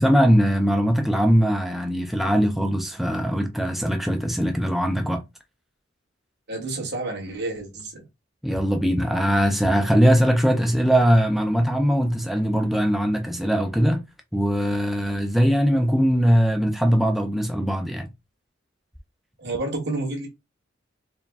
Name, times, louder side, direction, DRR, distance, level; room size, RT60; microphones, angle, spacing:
voice 1, 0.0-5.2 8.4-14.0 14.3-18.1, equal, ahead, 0.3 m, -21 dB
voice 2, 6.5-8.0 19.4-20.3, right 2 dB, 60° right, 1.5 m, -29 dB
4.5 x 2.2 x 3.4 m
head